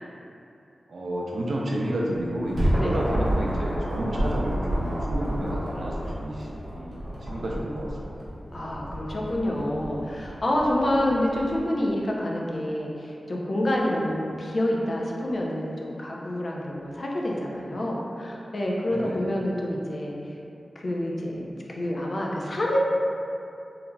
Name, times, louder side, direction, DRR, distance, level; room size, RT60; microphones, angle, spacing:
voice 1, 0.9-7.9 8.1-8.2 13.9-14.1 18.9-19.3, right 1 dB, 75° right, -3 dB, 0.4 m, -31 dB
sound 1, 2.1-11.6, equal, 60° right, 0.9 m, -30 dB
voice 2, 8.5-20.2 20.8-22.8, left 1 dB, 55° left, -3 dB, 0.4 m, -27 dB
3.0 x 2.4 x 2.2 m, 2.6 s
wide cardioid pair, 75°, 0 cm